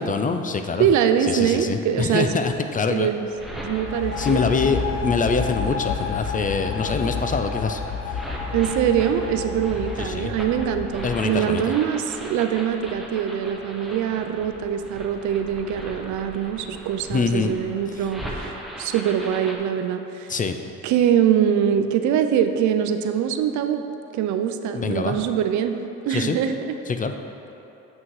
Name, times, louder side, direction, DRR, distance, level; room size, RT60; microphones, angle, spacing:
voice 1, 0.0-0.9 1.2-3.1 4.2-7.8 8.1-8.2 10.0-10.3 11.0-11.6 17.1-17.5 20.3-20.6 24.7-25.2 26.1-26.4 26.9-27.1, left 4 dB, 30° left, 7 dB, 0.5 m, -24 dB
voice 2, 0.8-2.4 2.9-3.3 3.6-4.8 8.5-20.3 20.8-23.8 24.1-25.8 26.0-26.7, right 9 dB, 75° right, 8 dB, 0.6 m, -23 dB
sound 1, 3.2-5.0 5.8-19.6, equal, ahead, 1.1 m, -38 dB
sound 2, 3.7-11.5, left 5 dB, 60° left, 0.9 m, -30 dB
7.5 x 6.1 x 4.8 m, 2.9 s
cardioid pair, 95°, 29 cm